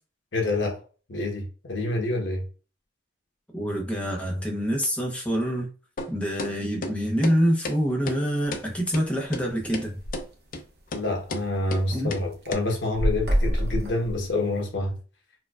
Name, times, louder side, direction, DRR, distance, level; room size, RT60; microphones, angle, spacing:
voice 1, 0.3-0.8 1.1-2.4 10.9-15.0, left 2 dB, 75° left, 1.0 m, -27 dB
voice 2, 3.5-5.7 6.1-10.0 11.9-12.1, equal, 5° left, 0.7 m, -26 dB
sound 1, 6.0-6.1 6.4-6.5 6.8-6.9 7.2-7.4 7.6-7.8 8.1-8.2 8.5-8.6 8.9-9.0 9.3-9.4 9.7-9.9 10.1-10.3 10.5-10.6 10.9-11.0 11.3-11.4 11.7-11.8 12.1-12.2 12.5-12.6, left 2 dB, 50° left, 0.4 m, -32 dB
sound 2, 8.4-8.7 9.1-9.2 9.4-9.5 9.8-10.2 10.8-10.9 11.2-12.0 12.3-14.6, equal, 60° right, 0.8 m, -26 dB
4.3 x 2.3 x 2.4 m
head